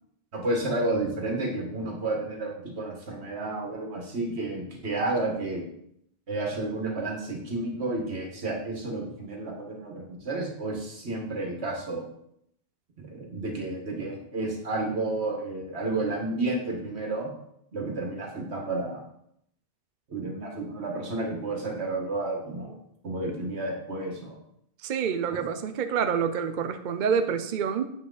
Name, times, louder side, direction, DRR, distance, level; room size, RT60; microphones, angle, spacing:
voice 1, 0.3-5.6 6.3-12.0 13.0-17.3 17.7-19.0 20.1-24.4 25.3-25.5, right 2 dB, 90° right, 1 dB, 1.8 m, -31 dB
voice 2, 24.8-27.9, right 7 dB, 55° right, 9 dB, 0.7 m, -27 dB
8.1 x 6.0 x 3.9 m, 0.74 s
omnidirectional pair, 1.1 m